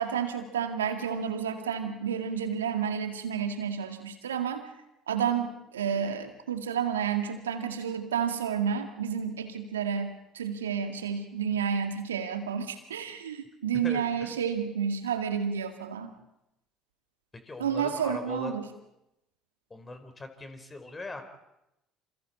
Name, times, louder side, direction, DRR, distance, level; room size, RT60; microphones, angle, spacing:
voice 1, 0.0-4.6 5.1-16.1 17.6-18.7, right 7 dB, 80° right, 6 dB, 2.1 m, -30 dB
voice 2, 13.8-14.3 17.5-18.6 19.7-21.2, left 3 dB, 20° left, 7 dB, 4.2 m, -40 dB
28.0 x 28.0 x 4.3 m, 0.86 s
figure-of-eight pair, 60°, 0 cm